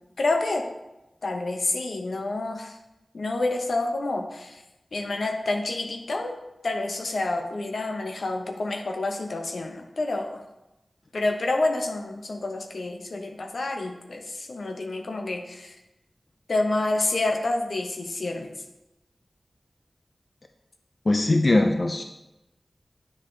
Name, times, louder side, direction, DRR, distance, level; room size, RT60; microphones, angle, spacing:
voice 1, 0.2-0.6 1.2-2.8 3.1-4.6 4.9-6.3 6.6-10.4 11.1-15.8 16.5-18.5, left 2 dB, 85° left, 4 dB, 0.7 m, -28 dB
voice 2, 21.1-22.0, left 2 dB, 50° left, 5 dB, 0.4 m, -21 dB
9.5 x 3.9 x 3.2 m, 0.96 s
wide cardioid pair, 70°, 0 cm